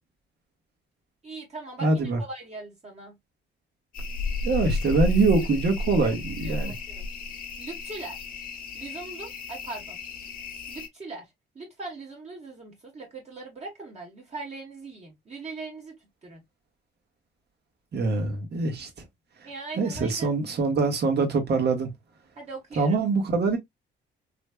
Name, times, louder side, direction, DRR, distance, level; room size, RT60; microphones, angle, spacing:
voice 1, 1.2-3.2 6.0-6.1 6.4-7.1 7.6-8.2 8.7-10.0 10.7-15.9 16.2-16.4 19.4-20.3 22.4-23.0, right 3 dB, 35° right, 1.2 m, -40 dB
voice 2, 1.8-2.2 4.4-6.7 17.9-18.9 19.8-21.9 22.8-23.6, right 3 dB, 55° right, 1.5 m, -24 dB
sound 1, 3.9-10.9, left 3 dB, 45° left, 0.9 m, -32 dB
3.2 x 3.2 x 2.3 m
cardioid pair, 90°, 20 cm